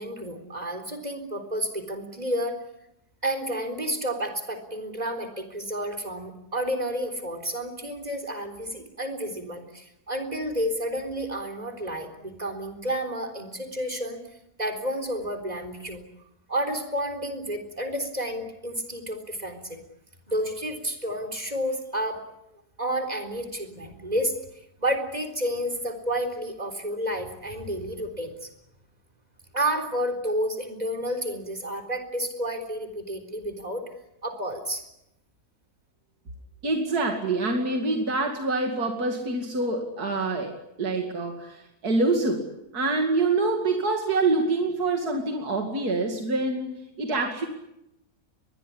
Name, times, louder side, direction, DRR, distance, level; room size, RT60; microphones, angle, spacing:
voice 1, 0.0-2.6 3.2-14.2 14.6-16.0 16.5-19.8 20.3-22.2 22.8-24.4 24.8-28.5 29.5-33.8 34.2-34.8, equal, 25° right, 6 dB, 4.0 m, -30 dB
voice 2, 36.6-47.5, right 3 dB, 80° right, 3 dB, 3.0 m, -26 dB
23.0 x 22.0 x 10.0 m, 0.83 s
omnidirectional pair, 1.6 m